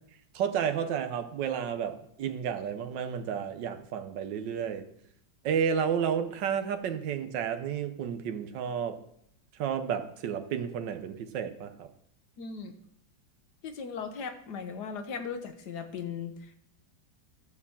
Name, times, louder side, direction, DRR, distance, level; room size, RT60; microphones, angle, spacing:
voice 1, 0.3-4.8 5.4-9.0 9.6-11.9, right 8 dB, 80° right, 9 dB, 1.5 m, -31 dB
voice 2, 12.4-12.7 13.6-16.6, left 6 dB, 65° left, 7 dB, 1.5 m, -38 dB
12.5 x 4.7 x 7.1 m, 0.71 s
omnidirectional pair, 1.9 m